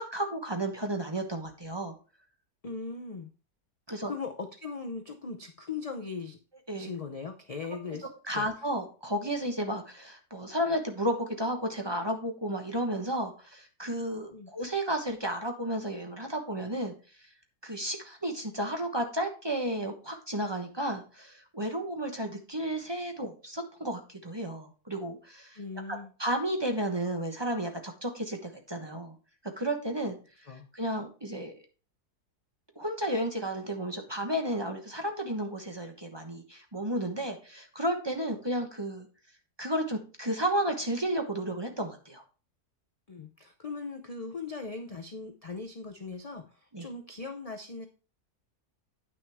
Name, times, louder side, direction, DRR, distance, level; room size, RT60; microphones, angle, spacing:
voice 1, 0.0-1.9 3.9-4.1 6.7-6.9 8.3-16.9 17.6-25.6 25.9-29.2 29.6-30.2 30.7-31.5 32.8-39.1 39.6-42.2 46.7-46.9, right 1 dB, 20° right, 4 dB, 1.0 m, -32 dB
voice 2, 2.6-3.3 4.1-6.4 6.8-8.5 14.3-14.5 25.5-26.1 30.5-30.7 43.1-47.9, left 4 dB, 45° left, 4 dB, 0.4 m, -39 dB
9.5 x 6.1 x 3.5 m, 0.36 s
omnidirectional pair, 1.7 m